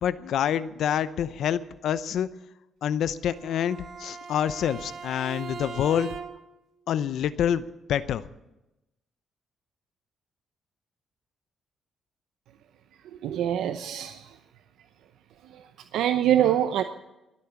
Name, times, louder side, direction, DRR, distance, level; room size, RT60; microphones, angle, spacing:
voice 1, 0.0-2.3 2.8-6.1 6.9-7.6 7.9-8.2, left 9 dB, 70° left, 15 dB, 0.7 m, -27 dB
Bowed string instrument, 3.2-6.6, right 5 dB, 65° right, 1.7 m, -40 dB
voice 2, 13.2-14.3 15.9-16.8, right 11 dB, 85° right, 8 dB, 0.7 m, -24 dB
22.5 x 8.5 x 7.1 m, 0.95 s
cardioid pair, 90°, 0 cm